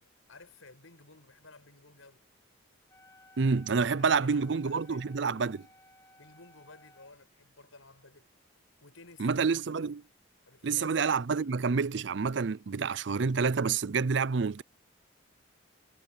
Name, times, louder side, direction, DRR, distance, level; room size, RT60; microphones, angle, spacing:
voice 1, 0.0-2.2 3.8-5.7 6.2-8.3 8.8-9.5 10.5-11.5, left 3 dB, 85° left, 6.9 m, -55 dB
Wind instrument woodwind instrument, 2.9-7.1, left 1 dB, 15° left, 1.4 m, -59 dB
voice 2, 3.4-5.6 9.2-10.0 10.6-14.6, right 5 dB, 60° right, 0.5 m, -28 dB
head